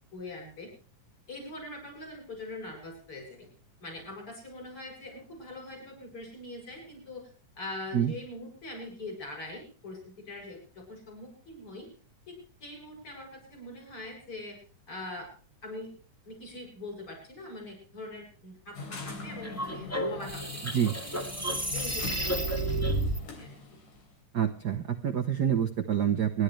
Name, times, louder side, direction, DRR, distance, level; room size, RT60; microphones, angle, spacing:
voice 1, 0.1-0.7 1.3-3.5 3.8-7.3 7.6-11.9 12.3-14.6 14.9-15.3 15.6-15.9 16.3-20.4 21.0-21.2 21.7-22.9 23.3-23.5, left 2 dB, 40° left, -1 dB, 8.8 m, -43 dB
sound 1, 18.8-24.0, left 4 dB, 75° left, 4.9 m, -42 dB
sound 2, 19.4-23.2, right 1 dB, 5° left, 1.7 m, -31 dB
voice 2, 24.3-26.4, right 9 dB, 65° right, 5 dB, 1.0 m, -27 dB
27.5 x 11.5 x 3.3 m, 0.40 s
omnidirectional pair, 3.6 m